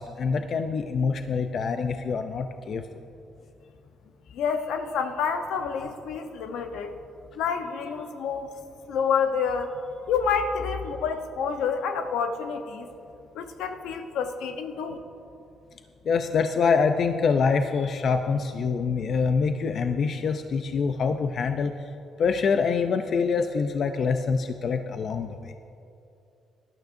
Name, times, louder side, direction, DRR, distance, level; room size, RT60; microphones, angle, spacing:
voice 1, 0.0-3.0 16.0-21.7 22.2-25.5, left 5 dB, 60° left, 7 dB, 0.5 m, -25 dB
voice 2, 4.3-6.9 7.3-8.5 8.9-9.7 10.1-12.9 13.3-15.0, left 6 dB, 85° left, 6 dB, 0.9 m, -28 dB
18.0 x 12.0 x 2.6 m, 2.7 s
cardioid pair, 90°, 0 cm